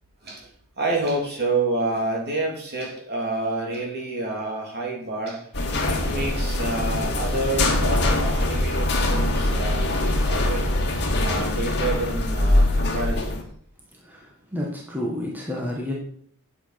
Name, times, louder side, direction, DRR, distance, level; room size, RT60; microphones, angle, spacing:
voice 1, 0.8-5.4 5.9-10.6 11.2-13.4, right 2 dB, 45° right, -1 dB, 3.2 m, -28 dB
sound 1, 5.5-13.4, left 1 dB, 50° left, 2.0 m, -23 dB
voice 2, 14.0-15.9, left 1 dB, 10° right, -3 dB, 1.6 m, -30 dB
8.5 x 8.3 x 5.9 m, 0.62 s
head